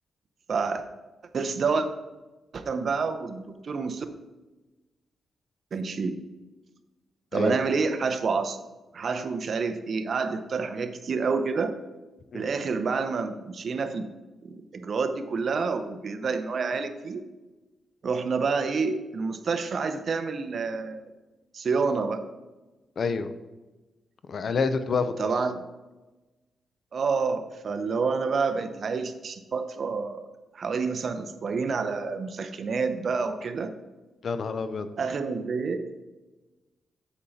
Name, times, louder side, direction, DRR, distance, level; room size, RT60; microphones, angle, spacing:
voice 1, 0.5-0.8 1.3-1.9 2.5-4.1 5.7-6.2 7.3-8.6 8.9-11.7 12.3-14.1 14.4-17.2 18.0-21.0 21.5-22.2 25.2-25.6 26.9-30.3 30.5-33.7 35.0-36.1, right 4 dB, 50° right, 9 dB, 0.7 m, -28 dB
voice 2, 23.0-23.3 24.3-25.3 34.2-34.9, left 5 dB, 50° left, 11 dB, 0.6 m, -28 dB
8.3 x 7.1 x 4.1 m, 1.1 s
wide cardioid pair, 130°, 0 cm